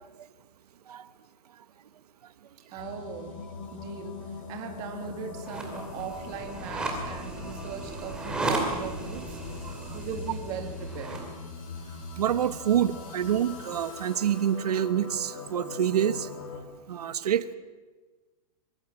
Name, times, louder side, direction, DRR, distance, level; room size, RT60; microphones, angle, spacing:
voice 1, 2.7-3.4 3.7-11.3, right 7 dB, 20° right, 5 dB, 2.3 m, -39 dB
sound 1, 2.8-16.6, left 4 dB, 60° left, 6.4 m, -41 dB
sound 2, 5.4-11.3, right 2 dB, 5° right, 2.6 m, -35 dB
voice 2, 12.2-16.3 16.9-17.4, right 9 dB, 90° right, 13 dB, 1.4 m, -26 dB
23.5 x 23.0 x 7.4 m, 1.3 s
supercardioid pair, 180°, 19 cm